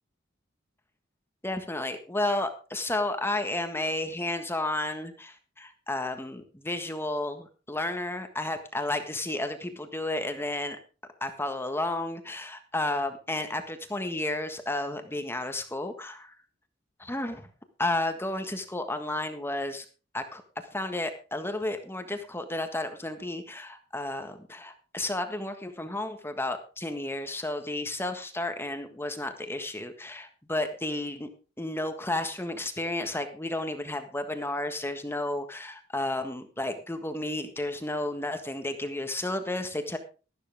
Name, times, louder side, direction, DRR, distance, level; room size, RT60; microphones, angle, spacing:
voice 1, 1.4-10.8 11.2-16.3 17.0-17.5 17.8-19.8 20.1-20.4 20.7-31.3 31.6-40.0, left 2 dB, 10° left, 7 dB, 1.5 m, -32 dB
13.0 x 12.0 x 3.5 m, 0.34 s
head